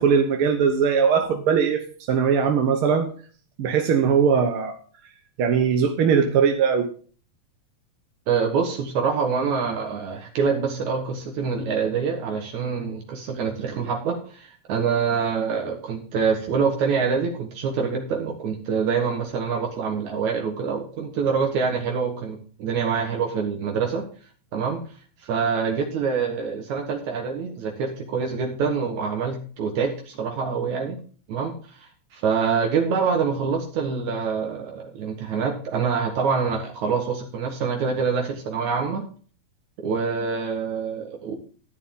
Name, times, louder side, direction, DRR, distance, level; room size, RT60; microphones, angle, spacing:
voice 1, 0.0-1.8 2.1-3.1 3.6-4.7 5.4-6.9, right 6 dB, 60° right, 5 dB, 1.5 m, -20 dB
voice 2, 8.3-24.1 24.5-24.8 25.2-31.0 31.3-39.1 39.8-41.3, right 5 dB, 75° right, 2 dB, 2.8 m, -25 dB
11.5 x 10.0 x 3.7 m, 0.41 s
omnidirectional pair, 3.4 m